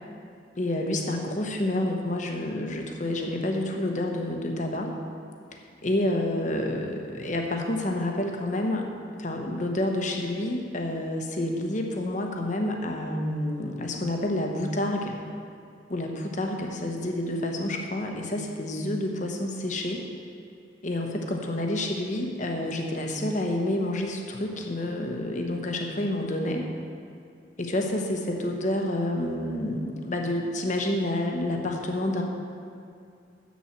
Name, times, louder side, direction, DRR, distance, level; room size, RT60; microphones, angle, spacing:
voice 1, 0.6-4.9 5.8-8.9 9.2-15.2 15.9-20.0 20.8-26.6 27.6-32.2, left 1 dB, 40° left, 2 dB, 1.0 m, -29 dB
7.3 x 7.2 x 7.5 m, 2.4 s
head